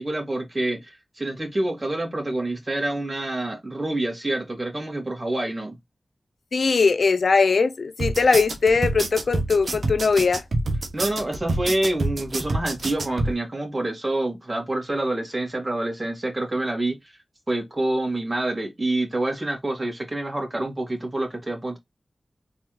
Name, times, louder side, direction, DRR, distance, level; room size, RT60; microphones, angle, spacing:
voice 1, 0.0-5.8 10.9-17.2 17.5-21.8, right 1 dB, 40° right, 2.3 m, -27 dB
voice 2, 6.5-10.4, left 4 dB, 80° left, 0.5 m, -20 dB
sound 1, 8.0-13.3, right 2 dB, 75° right, 1.1 m, -26 dB
4.0 x 3.5 x 3.1 m
cardioid pair, 45°, 0 cm